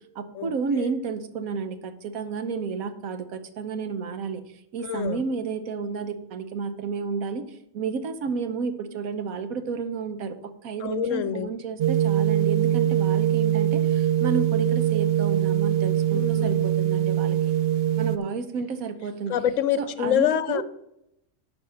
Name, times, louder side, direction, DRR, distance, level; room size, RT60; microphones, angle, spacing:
voice 1, 0.1-4.4 4.7-7.4 7.7-10.4 10.6-17.4 18.0-19.3 19.8-20.6, right 5 dB, 85° right, 10 dB, 1.3 m, -31 dB
voice 2, 4.8-5.2 10.8-11.5 16.1-16.7 19.3-20.6, left 10 dB, 70° left, 15 dB, 0.9 m, -26 dB
sound 1, 11.8-18.2, right 11 dB, 60° right, 0.7 m, -22 dB
11.0 x 5.2 x 5.8 m, 0.82 s
omnidirectional pair, 1.4 m